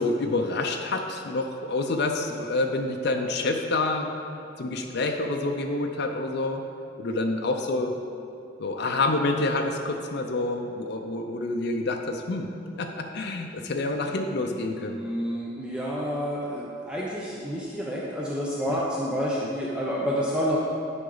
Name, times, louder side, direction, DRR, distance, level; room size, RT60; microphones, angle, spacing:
voice 1, 0.0-4.1 4.6-6.6 7.0-7.9 8.6-12.5 12.8-15.0 18.7-18.8 19.4-19.5, left 2 dB, 60° left, 3 dB, 0.5 m, -27 dB
voice 2, 14.6-20.6, equal, 5° right, -6 dB, 0.7 m, -29 dB
9.6 x 5.0 x 3.9 m, 2.6 s
head